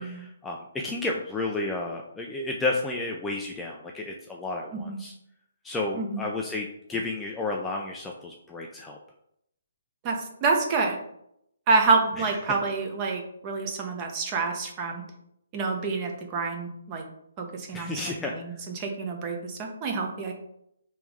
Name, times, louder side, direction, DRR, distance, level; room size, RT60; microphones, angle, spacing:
voice 1, 0.0-5.1 5.6-9.0 17.7-18.4, left 2 dB, 5° left, -1 dB, 0.4 m, -32 dB
voice 2, 10.0-11.0 11.7-15.0 15.5-17.0 17.4-20.3, right 4 dB, 25° right, 2 dB, 0.9 m, -28 dB
3.5 x 3.0 x 4.8 m, 0.75 s
hypercardioid pair, 155°, 0 cm